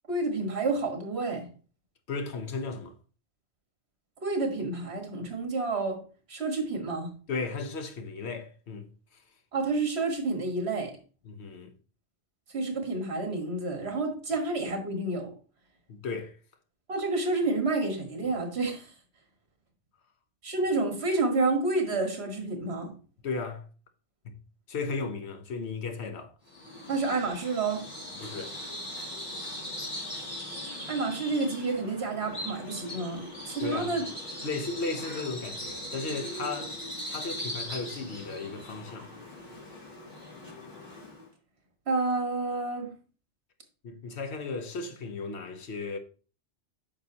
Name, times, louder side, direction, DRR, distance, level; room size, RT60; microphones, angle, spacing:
voice 1, 0.1-1.5 4.2-6.0 6.3-7.1 9.5-10.9 12.5-15.3 16.9-18.9 20.4-22.9 26.9-27.9 30.9-34.1 41.9-42.9, right 3 dB, 65° right, 1.7 m, -29 dB
voice 2, 2.1-3.0 7.3-9.2 11.2-11.7 15.9-16.4 23.2-23.6 24.2-24.4 24.7-26.3 28.2-28.5 33.6-33.9 34.4-36.8 37.1-39.1 43.8-46.0, left 4 dB, 70° left, 1.2 m, -35 dB
Bird vocalization bird call bird song, 26.5-41.3, left 1 dB, 45° left, 3.7 m, -40 dB
8.6 x 5.9 x 2.8 m
omnidirectional pair, 1.2 m